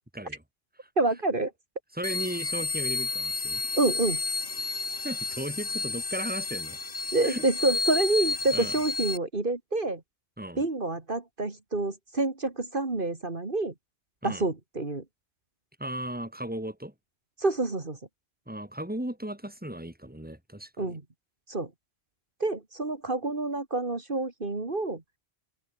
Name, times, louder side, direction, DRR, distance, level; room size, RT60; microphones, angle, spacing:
voice 1, 1.0-1.5 3.7-4.2 7.1-10.0 10.6-13.7 14.2-15.0 17.4-18.0 20.8-21.0 21.5-21.7 22.4-25.0, right 2 dB, 55° right, 2.7 m, -28 dB
voice 2, 1.9-3.6 5.0-6.8 7.2-7.4 8.5-8.7 10.4-10.6 14.2-14.5 15.8-16.9 18.5-21.0, right 1 dB, 10° right, 3.7 m, -36 dB
sound 1, 2.0-9.2, left 4 dB, 75° left, 2.6 m, -31 dB
omnidirectional pair, 1.1 m